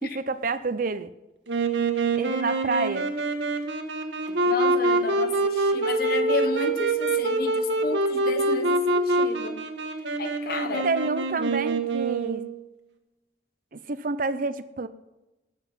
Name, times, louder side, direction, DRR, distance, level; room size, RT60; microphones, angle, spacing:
voice 1, 0.0-1.1 2.2-3.1 10.8-12.4 13.7-14.9, right 3 dB, 50° right, 13 dB, 0.6 m, -28 dB
Wind instrument woodwind instrument, 1.5-12.6, right 2 dB, 85° right, 1.7 m, -25 dB
voice 2, 4.4-9.6 10.2-10.9, left 3 dB, 55° left, 7 dB, 1.3 m, -32 dB
19.0 x 8.1 x 5.7 m, 1.0 s
head